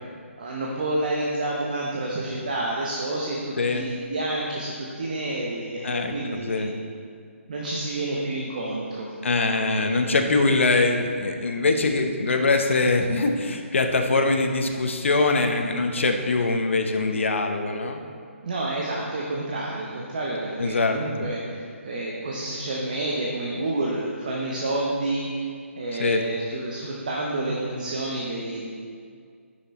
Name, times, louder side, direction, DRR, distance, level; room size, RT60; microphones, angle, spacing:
voice 1, 0.4-6.7 7.5-9.1 9.4-10.0 18.4-25.5 25.8-28.7, right 2 dB, 35° right, -3 dB, 0.8 m, -29 dB
voice 2, 5.8-6.7 9.2-18.0 20.6-21.3 26.0-26.2, left 3 dB, 60° left, 5 dB, 0.9 m, -23 dB
8.7 x 6.0 x 4.3 m, 2.2 s
hypercardioid pair, 175°, 7 cm